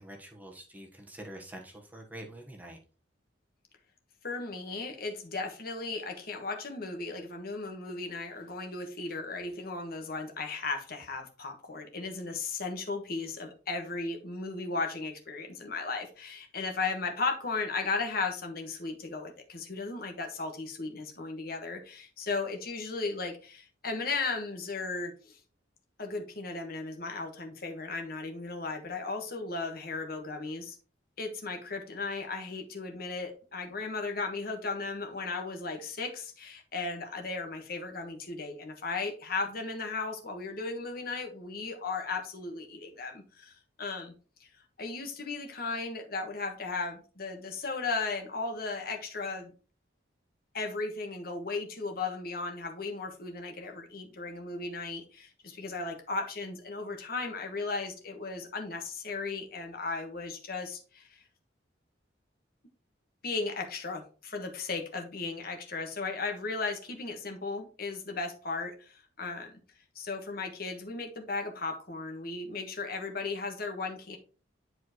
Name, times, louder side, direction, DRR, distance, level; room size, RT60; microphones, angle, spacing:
voice 1, 0.0-2.8, right 1 dB, 10° right, 0 dB, 1.2 m, -46 dB
voice 2, 4.2-25.4 26.0-30.7 31.2-44.1 44.4-44.5 44.8-49.5 50.5-61.2 63.2-69.5 69.9-74.2, left 3 dB, 55° left, 4 dB, 1.4 m, -36 dB
10.5 x 4.6 x 3.1 m, 0.36 s
head